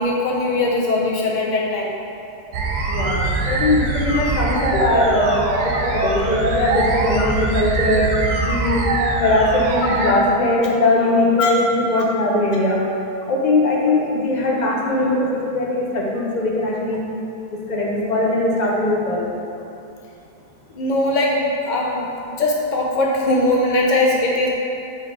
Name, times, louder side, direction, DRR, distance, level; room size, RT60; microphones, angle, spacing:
voice 1, 0.0-1.9 5.7-5.8 11.4-11.5 20.7-24.5, left 2 dB, 85° left, -3 dB, 0.4 m, -20 dB
sound 1, 2.5-10.1, right 3 dB, 90° right, 1.2 m, -22 dB
voice 2, 2.9-8.1 8.4-8.8 9.2-12.8 13.3-17.0 17.5-19.3, left 2 dB, 40° left, -3 dB, 0.7 m, -20 dB
5.6 x 3.8 x 4.7 m, 2.6 s
omnidirectional pair, 1.6 m